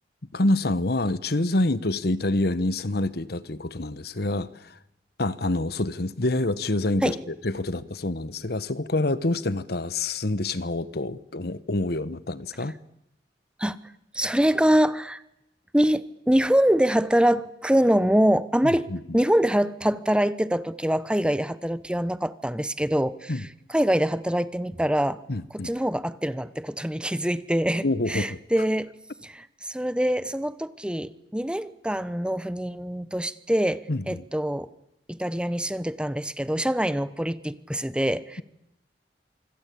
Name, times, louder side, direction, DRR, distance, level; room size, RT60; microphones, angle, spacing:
voice 1, 0.3-4.8 5.2-12.7 18.9-19.0 23.3-23.4 25.3-25.7 27.8-28.4 33.9-34.2, left 2 dB, 60° left, 16 dB, 1.2 m, -27 dB
voice 2, 14.1-15.2 15.7-18.9 19.1-23.4 23.7-25.2 25.6-28.9 29.2-34.7 35.1-38.4, equal, 5° right, 15 dB, 1.0 m, -24 dB
26.5 x 25.5 x 8.6 m, 0.85 s
head